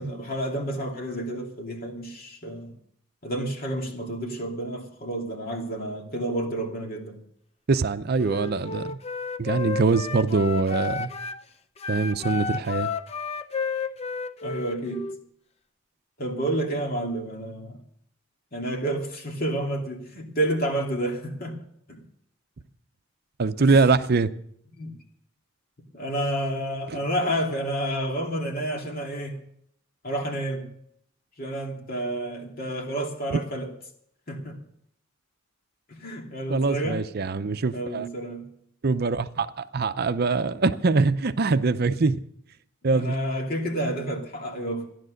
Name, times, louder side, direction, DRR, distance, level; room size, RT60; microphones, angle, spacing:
voice 1, 0.0-2.8 3.2-7.2 14.4-15.1 16.2-17.8 18.5-21.6 21.9-22.0 23.6-23.8 24.7-25.0 25.9-29.4 30.0-30.7 31.4-33.7 34.3-34.6 35.9-37.0 37.7-38.5 42.9-44.9, right 1 dB, 45° left, 2.7 m, -30 dB
voice 2, 7.7-9.0 9.4-11.1 11.9-12.9 23.4-24.3 26.9-27.0 36.5-38.1 38.8-42.2 42.8-43.2, right 4 dB, 50° right, 0.6 m, -23 dB
Wind instrument woodwind instrument, 8.1-11.4 11.8-15.2, left 4 dB, 30° left, 0.6 m, -32 dB
15.0 x 11.0 x 6.4 m
head